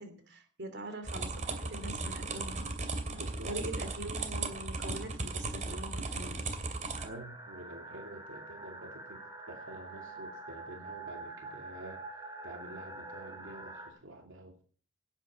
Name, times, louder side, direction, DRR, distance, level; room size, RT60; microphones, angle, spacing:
voice 1, 0.0-2.9 3.4-6.5, right 1 dB, 60° right, 7 dB, 2.9 m, -43 dB
sound 1, 1.0-7.1, right 3 dB, 40° right, 2.4 m, -36 dB
voice 2, 3.1-3.5 7.0-12.0 12.4-14.6, right 1 dB, 75° right, 2 dB, 2.6 m, -48 dB
sound 2, 7.0-13.9, right 2 dB, 20° right, 3.4 m, -46 dB
18.0 x 9.2 x 5.0 m, 0.43 s
head